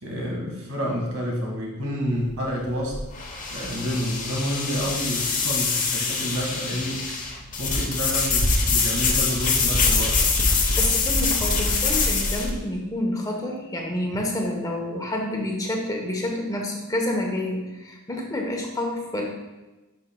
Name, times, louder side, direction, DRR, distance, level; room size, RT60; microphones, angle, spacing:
voice 1, 0.0-3.0 3.5-7.1 7.6-10.2, equal, 90° right, -1 dB, 2.0 m, -29 dB
sound 1, 2.1-12.5, left 4 dB, 35° left, 1.1 m, -24 dB
voice 2, 10.5-19.2, left 1 dB, 15° left, 0 dB, 1.1 m, -28 dB
11.0 x 5.6 x 2.3 m, 1.1 s
head